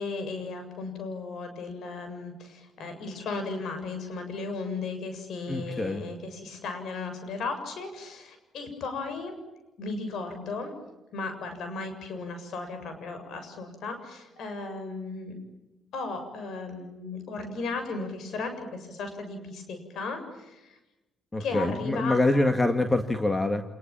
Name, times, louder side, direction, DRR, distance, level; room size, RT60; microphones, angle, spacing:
voice 1, 0.0-9.3 9.8-10.7 11.1-15.3 15.9-20.8 21.4-22.5, left 3 dB, 70° left, 7 dB, 7.2 m, -35 dB
voice 2, 5.5-6.0 21.3-23.6, left 2 dB, 20° left, 7 dB, 2.1 m, -25 dB
28.0 x 21.0 x 9.0 m, 1.0 s
cardioid pair, 90°, 0 cm